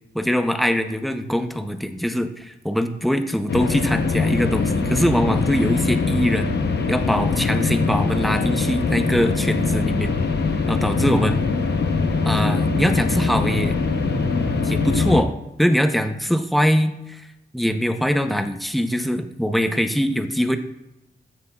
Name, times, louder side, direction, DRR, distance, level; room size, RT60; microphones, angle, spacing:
voice 1, 0.1-6.6 6.9-10.2 10.7-11.4 12.2-13.8 14.6-15.3 15.6-17.2 17.5-20.6, equal, ahead, 7 dB, 0.6 m, -22 dB
sound 1, 3.5-15.2, left 4 dB, 70° left, 0.8 m, -22 dB
14.5 x 5.9 x 2.3 m, 0.89 s
wide cardioid pair, 145°, 18 cm